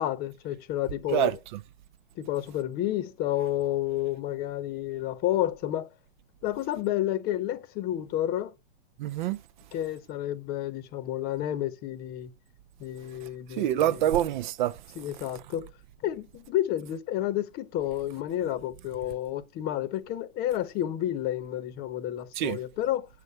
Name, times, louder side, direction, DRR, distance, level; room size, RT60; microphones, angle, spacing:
voice 1, 0.0-1.3 2.2-5.9 6.4-8.5 9.7-12.3 12.8-13.8 15.0-15.6 16.0-23.1, left 12 dB, 30° left, 0.9 m, -30 dB
voice 2, 9.0-9.4 13.6-14.8 22.3-22.6, right 12 dB, 45° right, 0.5 m, -26 dB
8.0 x 6.9 x 4.4 m
hypercardioid pair, 140°, 33 cm